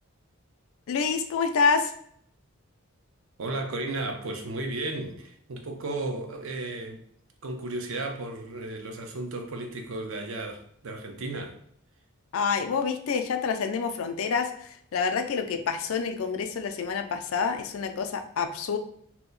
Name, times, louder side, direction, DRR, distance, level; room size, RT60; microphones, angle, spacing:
voice 1, 0.9-1.9 12.3-18.8, left 5 dB, 75° left, 7 dB, 0.4 m, -27 dB
voice 2, 3.4-7.1 7.4-11.6, right 2 dB, 70° right, 4 dB, 0.5 m, -34 dB
2.8 x 2.1 x 3.8 m, 0.65 s
head